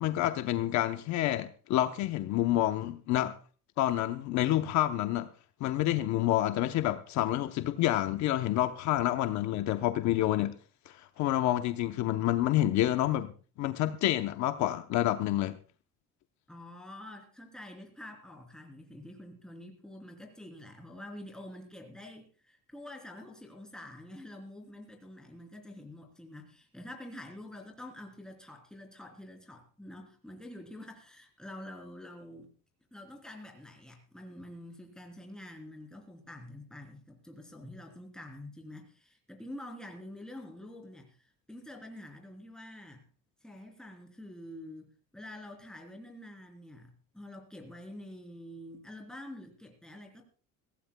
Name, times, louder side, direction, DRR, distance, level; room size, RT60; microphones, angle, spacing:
voice 1, 0.0-3.3 3.8-5.3 5.6-10.6 10.9-13.3 13.6-15.6, left 14 dB, 60° left, 0.8 m, -28 dB
voice 2, 16.5-32.5 32.9-43.0 43.4-50.2, left 1 dB, ahead, 3.2 m, -47 dB
22.5 x 16.0 x 2.2 m
cardioid pair, 150°, 32 cm